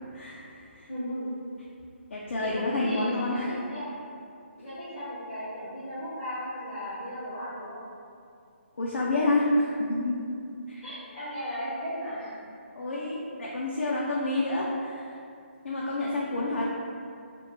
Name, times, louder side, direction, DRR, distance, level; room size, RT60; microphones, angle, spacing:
voice 1, 0.9-1.4 2.4-4.0 4.6-7.8 10.8-12.4, equal, 5° left, -17 dB, 0.5 m, -36 dB
voice 2, 2.1-3.5 8.8-10.2 10.7-10.8 12.8-15.0 15.6-16.6, left 2 dB, 75° left, -5 dB, 0.4 m, -28 dB
2.2 x 2.1 x 3.1 m, 2.4 s
hypercardioid pair, 180°, 7 cm